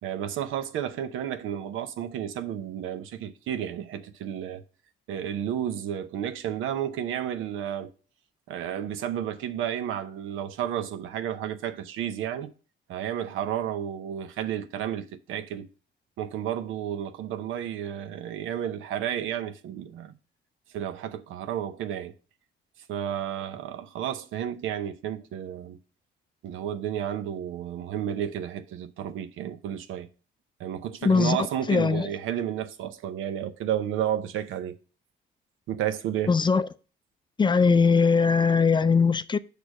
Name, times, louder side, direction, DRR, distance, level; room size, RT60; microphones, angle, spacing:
voice 1, 0.0-4.6 5.1-7.9 8.5-12.5 12.9-15.7 16.2-20.1 20.7-22.1 22.9-25.8 26.4-30.1 30.6-34.8 35.7-36.3, right 10 dB, 90° right, 0.7 m, -32 dB
voice 2, 31.0-31.4 31.7-32.1 36.3-36.7 37.4-39.4, left 5 dB, 25° left, 0.4 m, -20 dB
6.3 x 3.4 x 6.0 m
cardioid pair, 90°, 20 cm